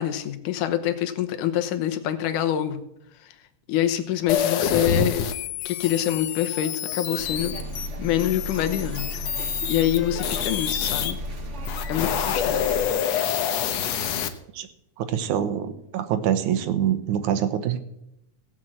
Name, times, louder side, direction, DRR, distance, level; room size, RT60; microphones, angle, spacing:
voice 1, 0.0-2.8 3.2-3.3 3.7-5.3 5.7-7.5 8.0-9.3 9.7-11.2 11.9-12.7, left 11 dB, 85° left, 9 dB, 2.5 m, -26 dB
sound 1, 4.3-11.1 11.6-14.3, left 8 dB, 70° left, 1.9 m, -27 dB
sound 2, 7.2-12.9, equal, 50° right, 0.8 m, -34 dB
voice 2, 15.0-17.8, right 10 dB, 75° right, 10 dB, 2.4 m, -25 dB
17.0 x 6.2 x 7.5 m, 0.81 s
omnidirectional pair, 3.5 m